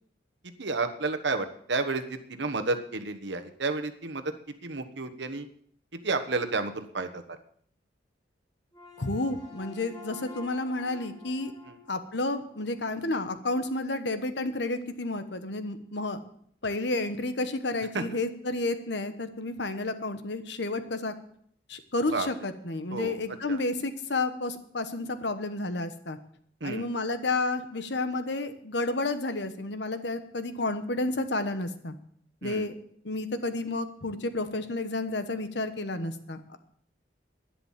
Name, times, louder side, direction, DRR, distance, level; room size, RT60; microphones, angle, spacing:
voice 1, 0.6-4.2 4.6-5.5 6.0-7.2 17.9-18.0 22.1-22.3 22.9-23.2 23.5-23.6 26.6-26.9 32.4-32.7, right 3 dB, 70° right, 7 dB, 1.3 m, -31 dB
sound 1, 8.7-13.0, left 3 dB, 20° left, 2.9 m, -48 dB
voice 2, 9.0-11.5 11.9-16.2 16.6-21.1 21.7-26.2 26.6-32.0 32.4-32.7 33.0-36.6, left 2 dB, 65° left, 10 dB, 1.2 m, -31 dB
11.5 x 10.5 x 7.4 m, 0.64 s
head